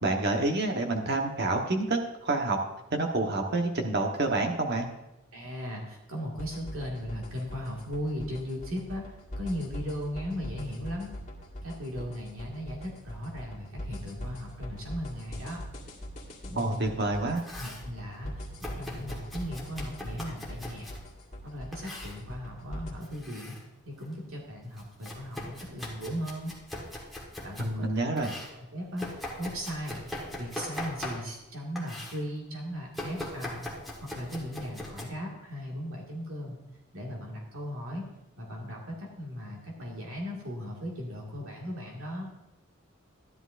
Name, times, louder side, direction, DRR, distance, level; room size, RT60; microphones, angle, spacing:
voice 1, 0.0-2.6 2.9-4.9 16.5-17.4 27.6-28.3, right 2 dB, 50° right, 3 dB, 1.2 m, -28 dB
voice 2, 5.3-9.0 9.4-11.1 11.6-15.6 16.4-16.9 17.6-20.9 21.4-23.6 23.9-26.6 27.4-28.3 28.7-33.6 34.0-36.6 36.9-38.1 38.4-42.3, equal, 80° right, -2 dB, 2.0 m, -37 dB
sound 1, 6.4-22.9, equal, 35° left, 1.8 m, -42 dB
Domestic sounds home sounds, 17.1-17.9 18.6-21.0 21.7-22.2 23.0-23.6 24.0-27.7 28.2-31.5 31.8-32.2 32.9-35.0, left 1 dB, ahead, 1.4 m, -41 dB
13.5 x 10.5 x 2.5 m, 0.93 s
head